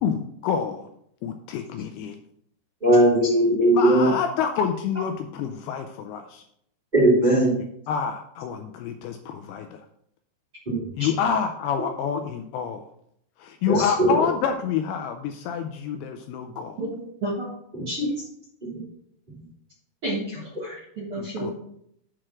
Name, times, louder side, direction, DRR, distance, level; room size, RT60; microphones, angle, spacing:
voice 1, 0.0-0.9 1.2-2.2 3.7-6.4 7.9-9.8 11.0-12.8 13.4-16.8 21.2-21.5, left 7 dB, 85° left, 6 dB, 2.3 m, -28 dB
voice 2, 2.8-4.1 6.9-7.5 10.6-10.9 13.7-14.3 17.7-17.8 18.7-18.8, right 1 dB, 15° right, -6 dB, 1.6 m, -19 dB
voice 3, 17.2-17.5 17.9-18.1 20.0-21.5, equal, 60° right, -5 dB, 1.5 m, -30 dB
7.5 x 4.8 x 5.8 m, 0.71 s
omnidirectional pair, 4.9 m